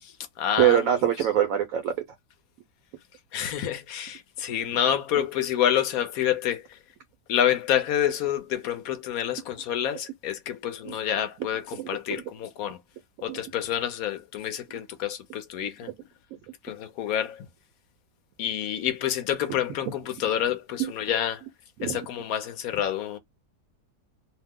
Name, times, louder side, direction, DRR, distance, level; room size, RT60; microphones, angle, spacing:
voice 1, 0.0-0.9 3.3-6.8 7.3-12.8 13.2-15.9 16.6-17.5 18.4-21.4 21.8-23.2, left 10 dB, 70° left, 0.9 m, -28 dB
voice 2, 0.6-1.9 10.8-10.9 11.8-12.2 13.3-13.4 20.8-20.9 21.8-22.0, right 11 dB, 70° right, 0.8 m, -24 dB
2.8 x 2.0 x 3.5 m
omnidirectional pair, 1.8 m